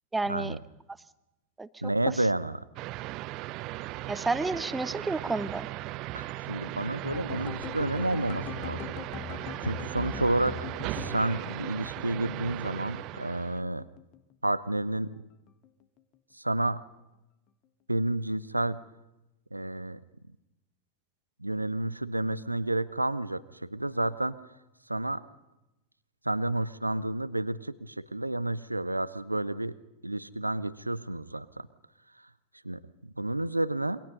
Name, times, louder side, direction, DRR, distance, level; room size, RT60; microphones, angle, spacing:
voice 1, 0.1-0.6 1.6-1.7 4.1-5.7, right 3 dB, 10° right, 15 dB, 1.1 m, -30 dB
voice 2, 1.8-2.6 6.1-8.8 9.3-10.6 10.8-13.8 14.4-15.1 16.4-16.8 17.9-18.8 19.5-20.0 21.4-24.4 24.9-25.2 26.2-29.8 30.0-31.7 32.6-34.0, right 1 dB, 85° right, 15 dB, 1.0 m, -30 dB
sound 1, 2.8-13.6, right 17 dB, 40° right, 0.8 m, -38 dB
sound 2, 7.0-13.2 13.5-14.5 14.8-15.2 15.5-15.7, left 8 dB, 35° left, 1.7 m, -41 dB
28.0 x 24.0 x 5.4 m, 0.95 s
figure-of-eight pair, 90°, 0 cm